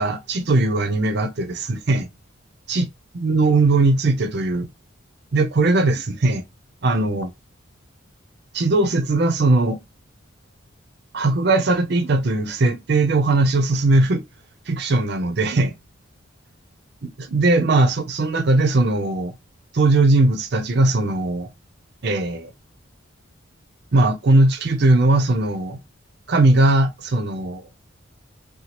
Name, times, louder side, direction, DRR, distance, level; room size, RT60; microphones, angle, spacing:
voice 1, 0.0-2.1 2.7-2.9 3.1-4.7 5.3-6.4 6.8-7.3 8.5-9.8 11.1-14.2 14.7-15.7 17.0-19.3 19.7-21.5 22.0-22.5 23.9-25.8 26.3-27.6, right 2 dB, 55° right, 0.5 m, -19 dB
2.8 x 2.2 x 2.9 m
head